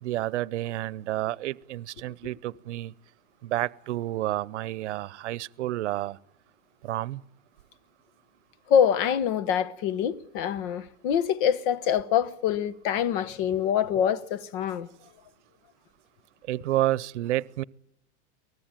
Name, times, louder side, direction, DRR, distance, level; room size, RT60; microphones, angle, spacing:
voice 1, 0.0-2.9 3.4-6.2 6.8-7.2 16.5-17.6, right 15 dB, 80° right, 0.8 m, -30 dB
voice 2, 8.7-14.9, left 8 dB, 50° left, 1.1 m, -25 dB
23.5 x 19.0 x 9.0 m
supercardioid pair, 150°, 34 cm